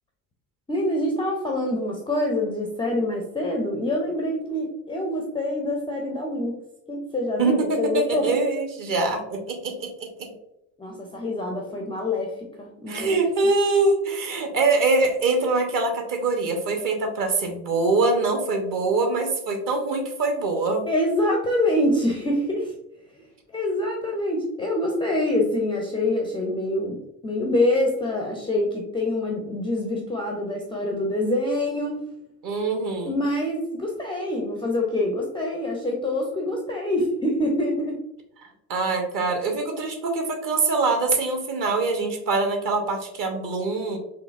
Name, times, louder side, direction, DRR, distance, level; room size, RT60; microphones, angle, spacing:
voice 1, 0.7-6.5 6.9-8.3 10.8-13.2 20.9-22.7 23.5-32.0 33.0-38.0, left 1 dB, 10° left, 0 dB, 0.4 m, -25 dB
voice 2, 7.4-10.3 12.9-20.8 32.4-33.1 38.7-44.0, right 3 dB, 40° right, 3 dB, 1.0 m, -24 dB
3.8 x 2.8 x 2.4 m, 0.85 s
figure-of-eight pair, 60°, 49 cm